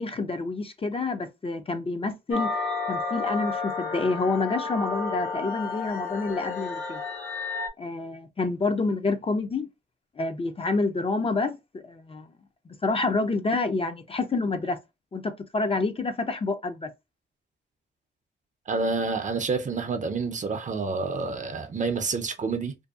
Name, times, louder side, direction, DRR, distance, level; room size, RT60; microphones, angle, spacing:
voice 1, 0.0-2.5 2.9-7.0 7.8-9.7 10.2-12.3 12.7-14.8 15.1-16.9, left 3 dB, 30° left, 0.4 m, -28 dB
sound 1, 2.3-7.7, left 4 dB, 90° left, 0.6 m, -31 dB
voice 2, 18.7-22.7, right 4 dB, 40° right, 0.5 m, -28 dB
2.6 x 2.2 x 2.3 m
cardioid pair, 75°, 19 cm